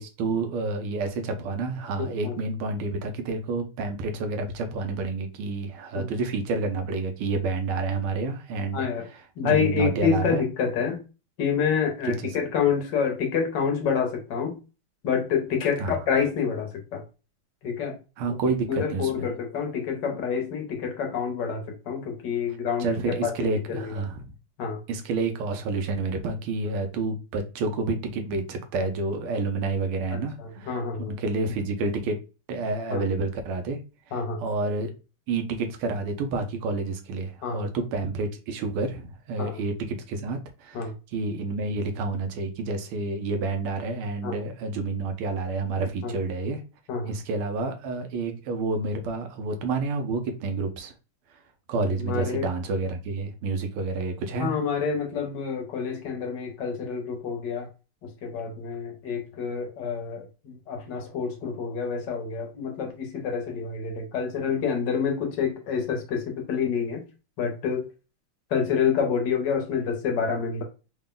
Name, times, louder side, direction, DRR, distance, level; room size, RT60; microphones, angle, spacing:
voice 1, 0.0-8.9 9.1-10.4 12.2-12.4 15.8-16.0 18.2-19.3 22.8-24.3 24.9-32.2 32.5-33.8 34.4-34.9 35.3-46.6 47.1-50.9 51.7-54.5, right 3 dB, 90° right, 6 dB, 1.6 m, -29 dB
voice 2, 8.7-9.0 9.4-11.0 11.4-14.6 15.0-17.0 17.6-18.0 18.7-23.3 23.7-23.9 24.6-24.8 30.1-31.1 32.9-33.0 34.1-34.4 37.4-37.7 39.4-39.6 40.7-40.9 44.2-44.3 46.0-46.1 46.9-47.1 52.0-52.5 54.4-57.7 58.0-67.0 67.4-67.8 68.5-70.6, left 6 dB, 65° left, 4 dB, 1.3 m, -28 dB
4.0 x 2.1 x 3.7 m, 0.31 s
omnidirectional pair, 2.4 m